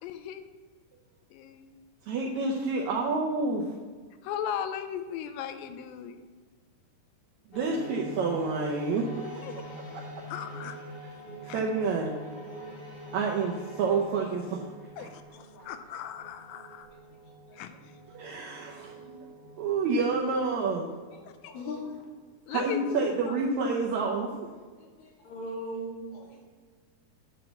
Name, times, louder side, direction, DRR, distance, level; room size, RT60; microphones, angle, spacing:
voice 1, 0.0-0.5 1.3-1.8 4.2-6.2 9.2-9.6 10.3-10.8 11.4-11.6 15.0-16.9 17.5-18.0 21.3-21.5 22.5-23.4, left 9 dB, 85° left, 9 dB, 2.2 m, -37 dB
voice 2, 2.1-3.6 7.5-9.4 11.5-12.1 13.1-14.6 15.0-15.1 18.1-19.2 19.6-20.9 22.5-24.5, right 4 dB, 80° right, -2 dB, 1.6 m, -29 dB
sound 1, 7.5-21.9, right 1 dB, 35° left, 1.0 m, -45 dB
voice 3, 15.3-15.7 17.5-17.6 21.1-22.0 24.8-26.4, left 1 dB, 65° left, 0 dB, 2.2 m, -40 dB
8.8 x 4.1 x 6.9 m, 1.4 s
omnidirectional pair, 4.1 m